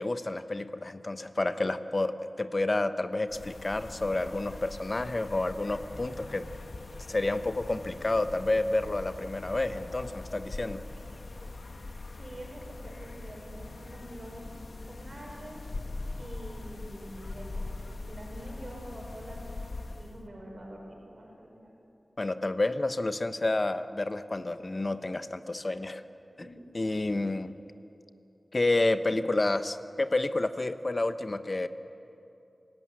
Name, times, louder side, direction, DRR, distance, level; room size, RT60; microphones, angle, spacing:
voice 1, 0.0-6.5 7.1-10.8 22.2-26.0 26.7-27.5 28.5-31.7, left 2 dB, 40° left, 10 dB, 1.0 m, -29 dB
sound 1, 3.3-20.2, left 2 dB, 70° left, 1.2 m, -42 dB
voice 2, 12.2-14.5 14.8-15.7 16.2-19.4 20.0-21.7 26.3-26.7, right 1 dB, 50° right, -1 dB, 5.8 m, -46 dB
25.5 x 15.5 x 9.7 m, 2.8 s
wide cardioid pair, 80°, 0 cm